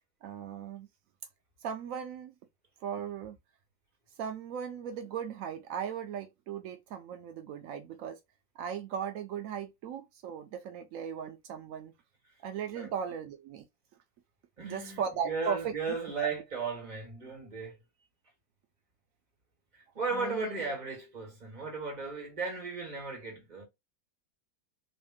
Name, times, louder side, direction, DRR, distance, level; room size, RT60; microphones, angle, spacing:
voice 1, 0.2-0.9 1.6-2.3 2.8-3.4 4.2-8.2 8.6-11.9 12.4-13.6 14.6-15.7 20.1-20.5, right 7 dB, 80° right, 0.7 m, -37 dB
voice 2, 14.6-17.7 19.7-23.6, right 4 dB, 25° right, 1.5 m, -36 dB
3.1 x 2.7 x 3.5 m
omnidirectional pair, 2.0 m